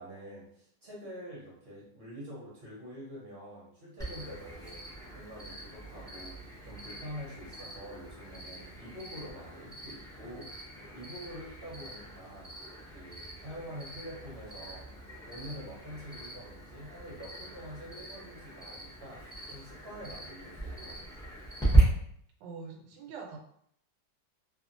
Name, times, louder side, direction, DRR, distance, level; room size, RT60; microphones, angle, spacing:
voice 1, 0.0-4.8 5.1-12.5 12.9-14.9 15.3-19.2 19.5-21.0, equal, 50° right, -6 dB, 0.8 m, -46 dB
Cricket, 4.0-21.8, right 1 dB, 5° left, 0.7 m, -38 dB
voice 2, 22.4-23.4, right 5 dB, 90° right, 2 dB, 1.3 m, -44 dB
2.7 x 2.6 x 2.5 m, 0.67 s
omnidirectional pair, 1.9 m